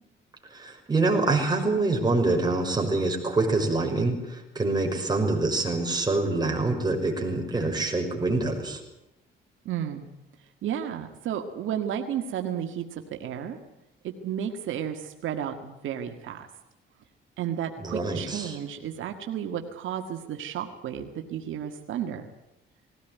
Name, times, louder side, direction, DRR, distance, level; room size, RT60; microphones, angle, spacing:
voice 1, 0.5-8.8 17.8-18.5, right 2 dB, 20° right, 2 dB, 5.7 m, -25 dB
voice 2, 9.7-10.1 10.6-13.6 14.0-16.5 17.4-22.3, right 9 dB, 80° right, 5 dB, 1.8 m, -32 dB
20.0 x 17.5 x 9.3 m, 0.88 s
cardioid pair, 90°, 20 cm